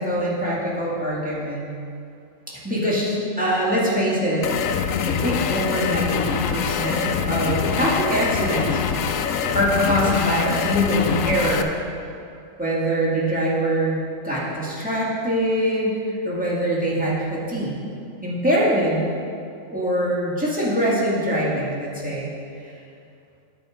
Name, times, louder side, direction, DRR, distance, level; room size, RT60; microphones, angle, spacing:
voice 1, 0.0-1.7 2.5-4.4 5.0-11.7 12.6-14.0 14.2-17.8 18.2-19.0 19.7-22.3, equal, 5° right, -7 dB, 1.8 m, -23 dB
sound 1, 4.4-11.6, left 7 dB, 90° left, 1.0 m, -24 dB
9.0 x 6.9 x 5.0 m, 2.5 s
omnidirectional pair, 1.3 m